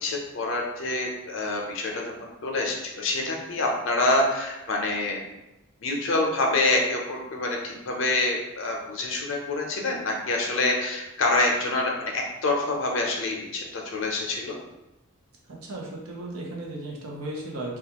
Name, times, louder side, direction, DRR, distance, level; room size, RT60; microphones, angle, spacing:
voice 1, 0.0-2.1 2.4-5.2 5.8-14.5, left 2 dB, 65° left, 0 dB, 0.5 m, -26 dB
voice 2, 15.6-17.8, right 1 dB, 90° right, -2 dB, 0.7 m, -35 dB
2.4 x 2.3 x 2.8 m, 0.96 s
head